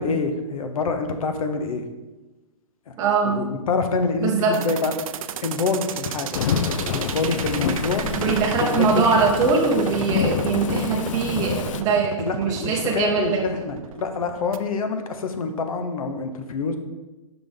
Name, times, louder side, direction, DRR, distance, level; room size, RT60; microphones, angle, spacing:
voice 1, 0.0-1.8 2.9-3.0 3.2-4.9 5.4-6.6 6.9-8.1 8.6-9.0 12.2-16.8, left 4 dB, 80° left, 7 dB, 0.9 m, -26 dB
voice 2, 3.0-3.4 4.2-4.6 8.0-13.4, right 4 dB, 20° right, -2 dB, 0.7 m, -22 dB
sound 1, 4.5-14.6, right 9 dB, 80° right, 0.4 m, -32 dB
Thunderstorm / Rain, 6.3-11.8, left 7 dB, 65° left, 0.5 m, -27 dB
5.9 x 3.5 x 5.3 m, 1.1 s
hypercardioid pair, 160°, 18 cm